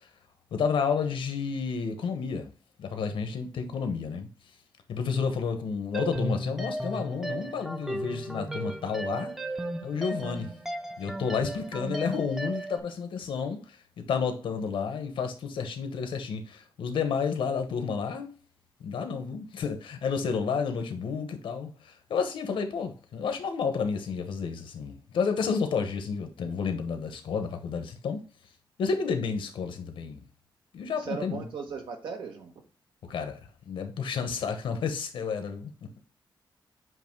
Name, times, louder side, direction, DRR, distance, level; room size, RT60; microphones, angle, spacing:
voice 1, 0.5-2.5 2.8-4.3 4.9-9.3 9.8-10.5 11.0-13.6 14.0-18.3 18.8-28.2 28.8-30.2 30.7-31.5 33.1-33.4 33.7-35.7, left 5 dB, 90° left, 1.1 m, -31 dB
sound 1, 5.9-12.8, right 1 dB, 5° right, 0.5 m, -34 dB
voice 2, 31.0-32.6, right 5 dB, 90° right, 1.5 m, -37 dB
8.0 x 2.7 x 4.6 m
wide cardioid pair, 140°, 8 cm